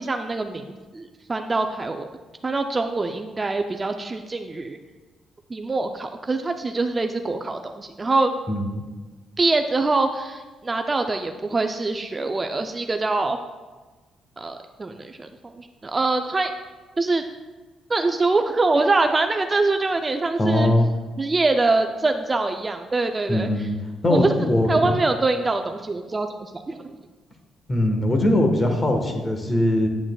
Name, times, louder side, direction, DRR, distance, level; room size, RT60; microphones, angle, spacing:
voice 1, 0.0-2.1 2.4-4.8 5.5-8.3 9.4-13.4 14.4-16.5 17.0-17.2 17.9-20.7 21.2-23.5 24.1-24.3 24.7-26.8, right 3 dB, 25° right, 6 dB, 0.4 m, -24 dB
voice 2, 8.5-8.8 20.4-20.9 23.3-23.8 24.0-25.0 27.7-29.9, left 1 dB, 25° left, 4 dB, 1.2 m, -21 dB
8.8 x 8.6 x 2.3 m, 1.3 s
cardioid pair, 90°, 0 cm